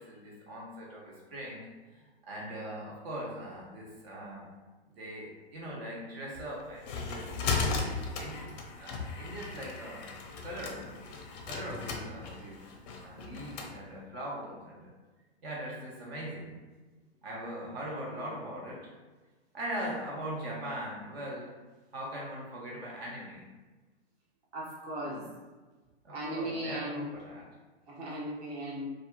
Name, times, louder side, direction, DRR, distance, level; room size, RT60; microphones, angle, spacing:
voice 1, 0.0-4.5 5.0-7.3 8.1-8.4 8.7-10.1 10.4-10.9 11.4-12.7 13.0-14.9 15.4-16.6 17.2-18.9 19.5-21.6 21.9-23.5 25.0-25.3 26.0-27.5, right 1 dB, 65° right, -3 dB, 1.0 m, -40 dB
sound 1, 6.4-13.7, left 4 dB, 40° left, 0.4 m, -36 dB
voice 2, 24.5-25.2 26.1-27.1 27.9-28.9, right 1 dB, 20° right, -5 dB, 0.4 m, -37 dB
2.5 x 2.4 x 2.3 m, 1.3 s
hypercardioid pair, 115°, 34 cm